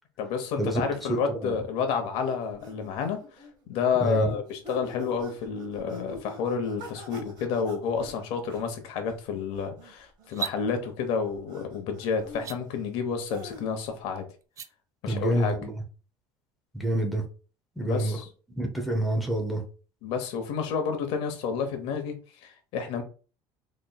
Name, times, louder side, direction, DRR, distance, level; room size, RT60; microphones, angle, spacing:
voice 1, 0.2-3.2 3.7-14.2 15.0-15.5 17.8-18.3 20.0-22.2 22.4-23.0, left 6 dB, 70° left, 0.9 m, -30 dB
voice 2, 1.1-1.6 4.0-4.3 15.1-15.7 16.7-17.2 17.8-18.2 18.6-19.6, right 1 dB, ahead, 0.7 m, -27 dB
sound 1, 1.9-13.9, left 1 dB, 45° right, 1.2 m, -46 dB
sound 2, 10.2-10.6 12.3-12.6 14.4-14.7, right 7 dB, 30° right, 0.3 m, -34 dB
4.1 x 3.0 x 2.3 m
cardioid pair, 145°, 10 cm